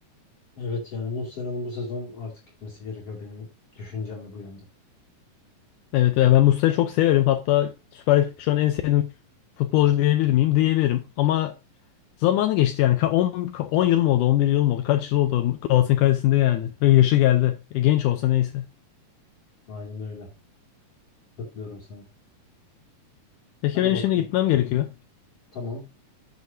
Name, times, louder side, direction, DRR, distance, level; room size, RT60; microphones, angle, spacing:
voice 1, 0.6-2.3 2.6-3.5 3.7-4.6 19.7-20.3 21.4-22.0 23.7-24.2 25.5-25.8, left 3 dB, 45° left, 3.3 m, -34 dB
voice 2, 5.9-9.1 9.6-11.5 12.2-18.7 23.6-24.9, left 13 dB, 75° left, 2.1 m, -20 dB
10.5 x 7.9 x 2.7 m
omnidirectional pair, 3.9 m